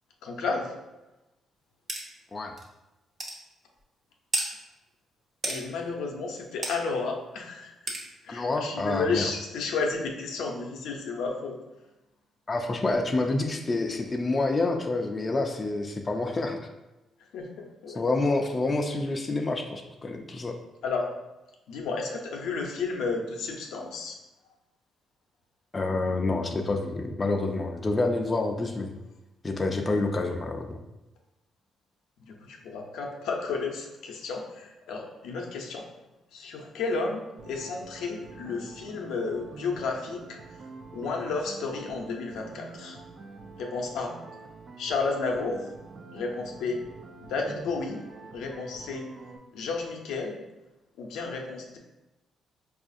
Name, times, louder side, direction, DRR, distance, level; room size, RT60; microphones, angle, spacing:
voice 1, 0.2-0.7 5.5-7.7 8.2-11.6 17.3-18.0 20.8-21.1 21.7-24.2 32.3-35.9 36.3-40.4 40.9-43.0 43.6-44.1 44.8-45.7 46.1-46.8 47.2-48.0 48.3-49.0 49.5-50.4 51.0-51.8, left 4 dB, 80° left, 1 dB, 0.5 m, -32 dB
sound 1, 1.9-2.0 2.6-2.7 3.2-3.4 4.3-4.5 5.4-5.6 6.6-6.8 7.9-8.0, right 2 dB, 35° right, 0.8 m, -30 dB
voice 2, 8.3-9.3 12.5-16.6 17.9-20.6 25.7-28.9 29.4-30.8, left 2 dB, 30° left, 3 dB, 0.4 m, -28 dB
sound 2, 37.4-49.4, right 3 dB, 55° right, 0.5 m, -46 dB
4.7 x 2.4 x 2.5 m, 1.0 s
cardioid pair, 90°, 0 cm